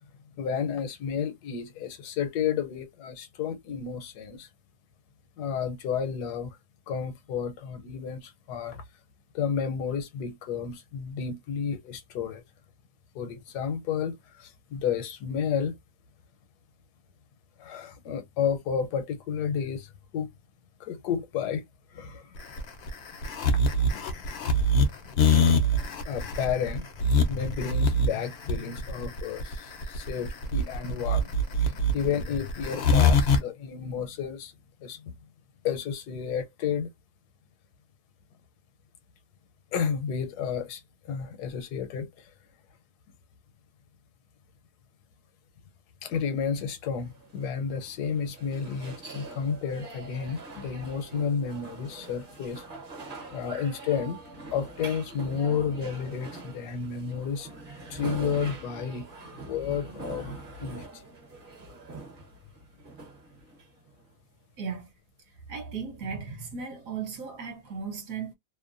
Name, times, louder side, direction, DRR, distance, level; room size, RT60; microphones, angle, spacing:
voice 1, 0.4-4.5 5.4-6.6 6.9-8.8 9.3-12.4 13.1-15.7 17.6-20.3 20.8-21.6 21.9-22.3 23.9-24.7 25.0-26.9 27.3-34.5 34.8-35.1 35.6-36.9 39.7-42.3 46.0-52.6 53.3-54.2 54.5-57.5 57.9-61.0, left 7 dB, 80° left, 1.2 m, -32 dB
sound 1, 22.4-33.4, left 2 dB, 65° left, 0.6 m, -23 dB
sound 2, 47.0-64.1, right 2 dB, 40° right, 0.8 m, -43 dB
voice 2, 64.6-64.9 65.5-68.3, right 6 dB, 65° right, 1.1 m, -36 dB
2.8 x 2.1 x 2.4 m
omnidirectional pair, 1.7 m